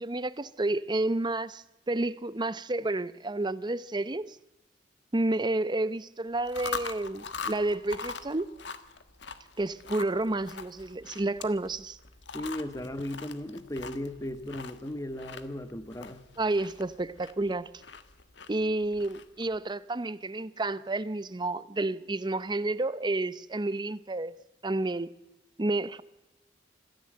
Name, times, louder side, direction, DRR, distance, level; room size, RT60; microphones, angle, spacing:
voice 1, 0.0-4.4 5.1-8.5 9.6-12.0 16.4-17.7 18.5-24.3 24.6-25.1 25.6-26.0, right 2 dB, 25° right, 0.7 m, -30 dB
Chewing mastication, 6.3-19.6, left 5 dB, 75° left, 1.4 m, -42 dB
voice 2, 12.3-16.2, left 1 dB, 20° left, 1.3 m, -36 dB
26.0 x 14.5 x 7.8 m
head